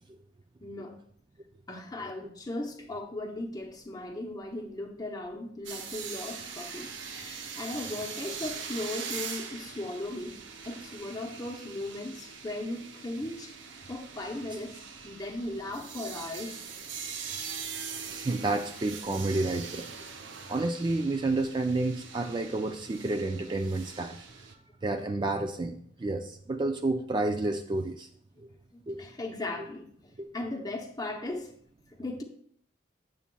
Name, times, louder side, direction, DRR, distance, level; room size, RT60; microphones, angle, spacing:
voice 1, 0.6-1.0 1.7-13.6 13.9-14.8 15.0-16.6 28.7-31.5 32.0-32.2, left 2 dB, 20° left, 3 dB, 0.7 m, -37 dB
sound 1, 5.7-24.5, right 6 dB, 75° right, 0.7 m, -42 dB
voice 2, 18.1-19.9 20.5-24.3 24.8-28.1 28.4-28.5 28.9-29.0 29.6-29.7 30.2-30.3, right 2 dB, 25° right, 6 dB, 0.3 m, -30 dB
8.7 x 6.9 x 2.3 m, 0.62 s
head